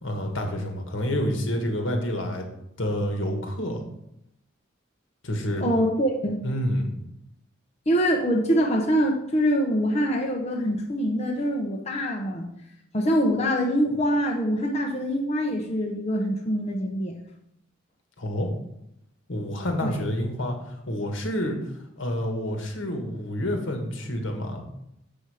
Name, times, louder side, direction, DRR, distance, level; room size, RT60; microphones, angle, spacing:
voice 1, 0.0-2.5 2.8-3.8 5.2-5.7 6.4-6.9 18.2-18.5 19.3-21.6 22.0-24.6, equal, 75° left, 4 dB, 1.5 m, -28 dB
voice 2, 5.6-6.4 7.9-12.5 12.9-17.2 19.8-19.9, equal, 35° left, -1 dB, 0.9 m, -24 dB
6.9 x 6.2 x 4.9 m, 0.79 s
head